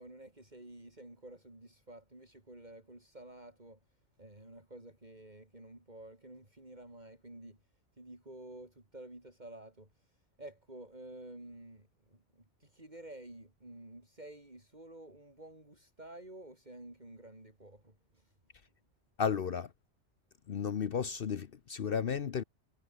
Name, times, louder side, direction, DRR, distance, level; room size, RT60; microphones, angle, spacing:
voice 1, 0.0-3.8 4.2-7.6 8.0-18.3, right 1 dB, 40° right, 5.5 m, -51 dB
voice 2, 19.2-19.7 20.5-22.4, left 7 dB, 55° left, 1.0 m, -33 dB
omnidirectional pair, 1.2 m